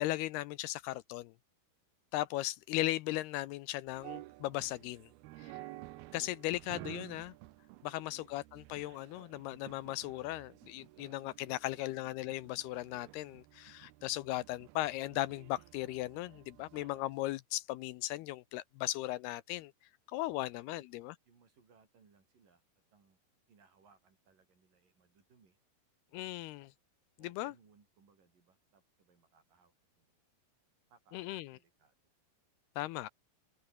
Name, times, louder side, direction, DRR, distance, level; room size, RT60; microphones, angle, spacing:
voice 1, 0.0-1.3 2.1-5.1 5.4-5.5 6.1-7.3 7.8-19.7 20.1-21.2 26.1-26.7 27.2-27.5 31.1-31.6 32.8-33.1, left 17 dB, 85° left, 2.6 m, -37 dB
sound 1, 3.9-17.2, right 18 dB, 75° right, 2.5 m, -53 dB
voice 2, 7.7-8.3 11.2-11.9 20.3-20.9 21.3-22.6 22.9-23.2 23.5-25.6 27.2-30.1 30.9-31.9, right 5 dB, 55° right, 6.1 m, -68 dB
open air
omnidirectional pair, 4.9 m